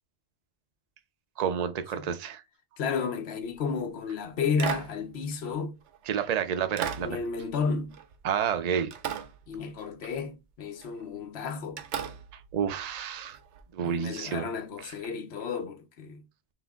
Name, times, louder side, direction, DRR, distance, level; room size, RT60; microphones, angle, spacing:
voice 1, 1.4-2.4 6.1-7.1 8.2-8.9 12.5-13.4 13.7-14.5, right 8 dB, 60° right, 0.4 m, -29 dB
voice 2, 2.8-5.8 7.0-8.0 9.5-11.8 13.8-16.2, left 5 dB, 65° left, 0.9 m, -32 dB
sound 1, 3.5-3.9 4.6-6.1 6.8-8.6 8.9-10.1 10.8-11.0 11.8-13.6 15.0-15.1, right 9 dB, 75° right, 0.9 m, -38 dB
5.8 x 2.0 x 3.5 m
omnidirectional pair, 1.2 m